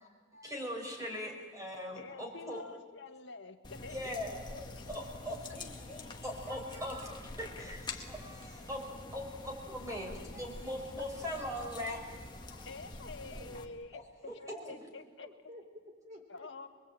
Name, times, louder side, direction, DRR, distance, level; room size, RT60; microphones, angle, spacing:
voice 1, 0.0-2.6 3.9-4.4 4.9-5.4 6.2-12.7 13.9-14.3, left 1 dB, 15° right, 1 dB, 6.0 m, -41 dB
voice 2, 2.0-4.6 11.0-11.1 12.4-15.3 16.3-16.7, left 3 dB, 65° left, 6 dB, 1.6 m, -48 dB
sound 1, 3.6-13.6, left 2 dB, 25° left, 2.0 m, -47 dB
voice 3, 4.1-7.4 13.3-13.7 14.5-14.9 15.2-16.5, left 1 dB, 35° right, 3 dB, 4.5 m, -52 dB
25.5 x 22.5 x 9.0 m, 1.5 s
head